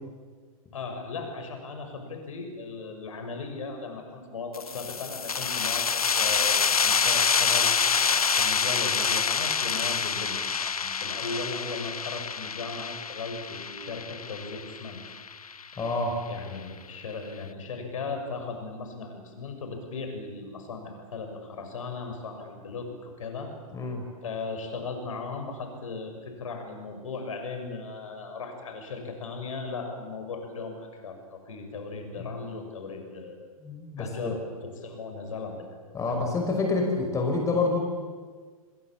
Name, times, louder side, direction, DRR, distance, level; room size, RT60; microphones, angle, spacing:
voice 1, 0.7-15.0 15.5-15.8 16.3-23.5 24.2-33.5 34.0-35.7 36.1-36.2, left 4 dB, 60° left, 5 dB, 6.5 m, -37 dB
sound 1, 4.5-15.9, left 6 dB, 75° left, 0.8 m, -27 dB
voice 2, 15.8-16.2 23.7-24.1 32.2-32.3 33.6-34.4 35.9-37.8, left 3 dB, 15° left, 2 dB, 5.8 m, -27 dB
27.0 x 21.5 x 8.8 m, 1.5 s
figure-of-eight pair, 105°, 19 cm